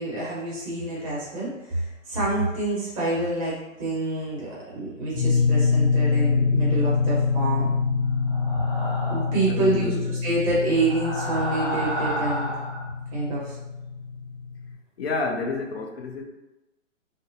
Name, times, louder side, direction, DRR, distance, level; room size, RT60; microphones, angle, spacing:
voice 1, 0.0-7.7 9.1-12.5 13.1-13.5, right 2 dB, 25° right, -7 dB, 0.9 m, -27 dB
sound 1, 5.2-14.7, left 5 dB, 75° left, 1.0 m, -25 dB
sound 2, 8.3-9.5 10.7-12.9, right 1 dB, ahead, 1.0 m, -31 dB
voice 2, 9.5-10.0 15.0-16.2, left 3 dB, 50° left, 2 dB, 0.5 m, -29 dB
2.3 x 2.2 x 2.8 m, 1.0 s
hypercardioid pair, 140°, 40 cm